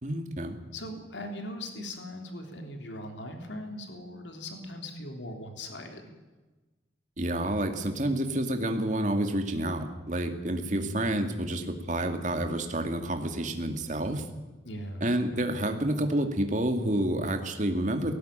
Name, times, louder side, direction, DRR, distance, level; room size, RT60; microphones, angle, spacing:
voice 1, 0.0-0.6 7.2-14.2 15.0-18.1, right 1 dB, 45° right, 6 dB, 2.4 m, -29 dB
voice 2, 0.7-6.1 10.7-11.1 14.6-15.0, left 1 dB, 85° left, 4 dB, 3.5 m, -40 dB
18.0 x 17.0 x 9.1 m, 1.2 s
head